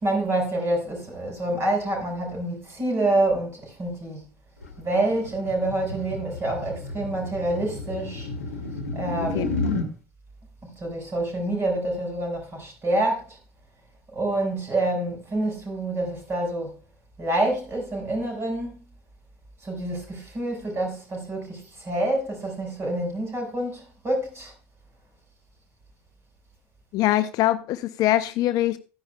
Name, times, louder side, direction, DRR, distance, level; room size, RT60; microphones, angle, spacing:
voice 1, 0.0-4.2 4.8-8.3 8.9-9.6 10.6-13.4 14.1-16.8 17.2-18.8 19.6-24.5, right 1 dB, 35° right, 5.5 m, -27 dB
sound 1, 4.6-9.9, left 3 dB, 85° left, 1.1 m, -32 dB
voice 2, 9.3-9.8 26.9-28.8, left 14 dB, 55° left, 0.6 m, -23 dB
13.5 x 10.0 x 2.3 m
figure-of-eight pair, 65°, 8 cm